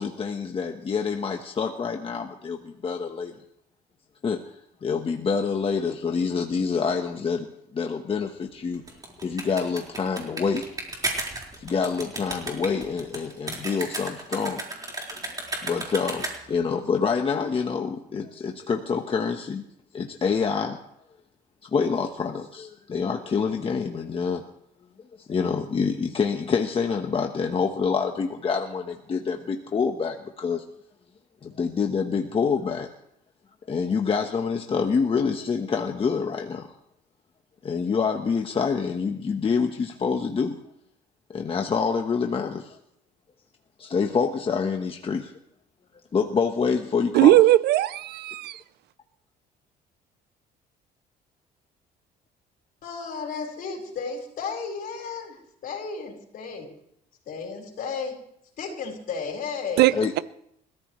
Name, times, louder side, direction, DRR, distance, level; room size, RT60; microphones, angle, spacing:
voice 1, 0.0-3.3 4.2-4.5 4.8-7.5 7.7-8.8 9.2-10.7 11.6-14.6 15.6-19.6 19.9-20.8 21.6-24.4 25.3-30.6 31.4-32.9 33.7-36.7 37.6-40.6 41.3-42.8 43.8-45.3 46.1-47.4 59.9-60.1, left 5 dB, 35° left, 1.3 m, -26 dB
sound 1, 8.7-16.6, right 2 dB, 20° right, 4.7 m, -34 dB
voice 2, 47.1-48.6 59.8-59.9, right 15 dB, 75° right, 0.6 m, -18 dB
voice 3, 52.8-55.4 55.6-56.7 57.3-58.2 58.6-60.0, left 5 dB, 60° left, 4.8 m, -33 dB
29.5 x 14.5 x 3.3 m
cardioid pair, 110°, 17 cm